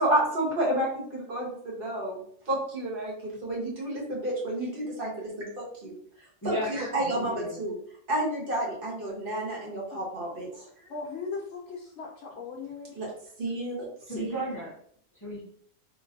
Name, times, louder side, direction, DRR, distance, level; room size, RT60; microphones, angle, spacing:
voice 1, 0.0-2.2 2.5-5.5 5.8-5.9 6.4-7.8 8.1-10.6 12.9-13.1 13.4-13.9 14.1-14.3, right 1 dB, 45° right, -4 dB, 1.3 m, -30 dB
voice 2, 6.4-7.6 14.1-14.7 15.2-15.4, equal, 20° left, -5 dB, 0.6 m, -34 dB
voice 3, 10.9-13.0, left 4 dB, 75° left, -2 dB, 0.9 m, -38 dB
3.7 x 2.6 x 2.6 m, 0.62 s
omnidirectional pair, 1.3 m